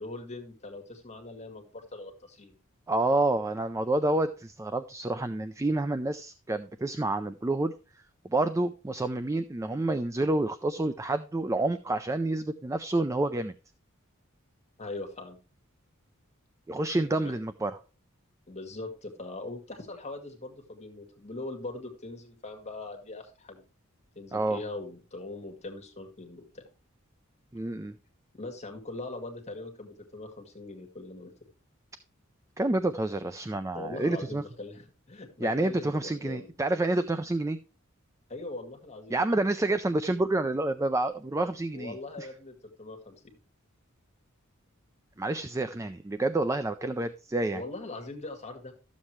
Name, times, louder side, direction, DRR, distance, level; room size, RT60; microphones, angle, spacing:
voice 1, 0.0-2.6 14.8-15.4 17.2-17.3 18.5-23.6 24.2-26.6 28.4-31.3 33.7-36.5 38.3-39.2 41.7-43.2 47.5-48.7, left 2 dB, 30° left, 3 dB, 2.0 m, -41 dB
voice 2, 2.9-7.7 8.2-13.5 16.7-17.8 24.3-24.6 27.5-28.0 32.6-34.4 35.4-37.6 39.1-42.3 45.2-47.6, right 2 dB, 15° right, 11 dB, 0.4 m, -28 dB
13.0 x 7.3 x 3.2 m, 0.34 s
head